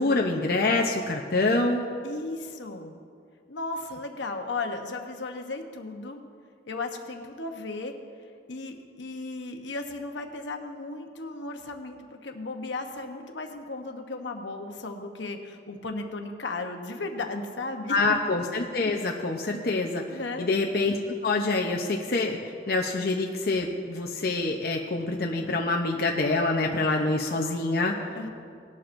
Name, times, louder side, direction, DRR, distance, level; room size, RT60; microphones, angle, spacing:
voice 1, 0.0-1.9 17.9-21.0 21.2-22.4 22.7-28.1, left 3 dB, 55° left, 1 dB, 0.7 m, -26 dB
voice 2, 2.0-3.0 3.5-6.2 6.7-7.9 8.5-18.0 20.1-20.5 28.1-28.3, left 3 dB, 80° left, 4 dB, 1.0 m, -35 dB
19.0 x 11.5 x 2.6 m, 2.2 s
head